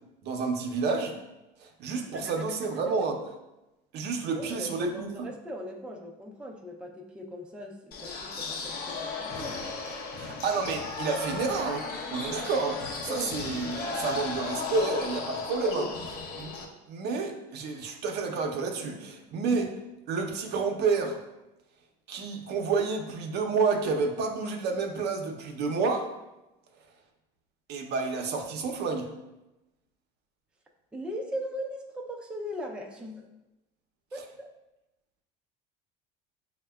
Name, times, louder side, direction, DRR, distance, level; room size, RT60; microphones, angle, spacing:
voice 1, 0.2-1.1 1.6-3.2 3.9-5.3 10.2-15.9 16.4-16.5 16.9-19.7 20.1-21.2 22.1-26.1 27.7-29.1, right 4 dB, 60° right, 4 dB, 0.6 m, -29 dB
voice 2, 4.3-9.6 13.1-13.4 15.7-16.0 30.9-33.3 34.1-34.5, equal, 5° right, 0 dB, 0.4 m, -39 dB
sound 1, 7.9-16.6, left 4 dB, 55° left, 0.7 m, -36 dB
6.3 x 2.1 x 2.2 m, 0.97 s
supercardioid pair, 100°, 19 cm